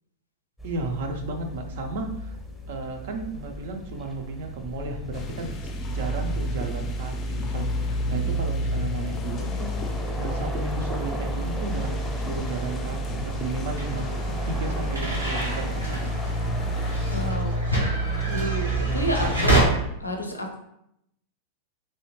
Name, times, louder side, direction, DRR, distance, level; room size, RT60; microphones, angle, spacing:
sound 1, 0.6-19.7, right 1 dB, ahead, 0.7 m, -30 dB
voice 1, 0.6-2.4 2.7-14.1 14.5-16.1 18.7-19.6, right 3 dB, 55° right, 5 dB, 0.5 m, -34 dB
sound 2, 5.1-17.3, left 3 dB, 30° left, 0.4 m, -39 dB
sound 3, 13.8-19.6, right 2 dB, 85° right, 1.0 m, -28 dB
voice 2, 17.1-17.6 18.3-19.6 20.0-20.6, equal, 85° left, 3 dB, 0.5 m, -30 dB
3.2 x 2.7 x 2.9 m, 0.78 s
figure-of-eight pair, 90°, 0 cm